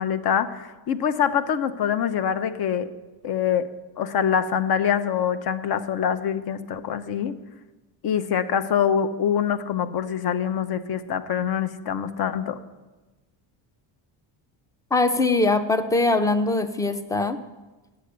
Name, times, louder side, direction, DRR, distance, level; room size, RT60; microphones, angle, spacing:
voice 1, 0.0-2.9 3.2-3.7 4.0-7.4 8.0-12.6, left 8 dB, 50° left, 12 dB, 0.8 m, -24 dB
voice 2, 14.9-17.4, left 2 dB, 10° left, 10 dB, 0.4 m, -22 dB
9.9 x 7.7 x 8.0 m, 1.2 s
cardioid pair, 150°, 48 cm